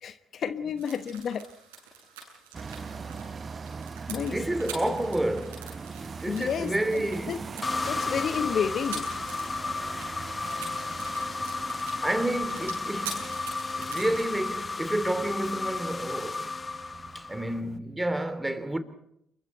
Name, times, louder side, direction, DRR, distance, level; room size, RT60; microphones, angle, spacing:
voice 1, 0.0-1.5 4.1-4.4 4.6-4.9 6.3-7.4 7.9-9.1, left 7 dB, 55° left, 1.1 m, -31 dB
sound 1, 0.8-14.2, right 5 dB, 85° right, 7.7 m, -45 dB
sound 2, 2.5-17.8, right 5 dB, 35° right, 0.9 m, -42 dB
voice 2, 4.0-7.5 12.0-13.4 13.8-16.5 17.1-18.8, right 1 dB, 10° right, 3.3 m, -30 dB
sound 3, 7.6-17.6, left 3 dB, 30° left, 1.1 m, -33 dB
29.0 x 23.0 x 4.5 m
hypercardioid pair, 50°, 0 cm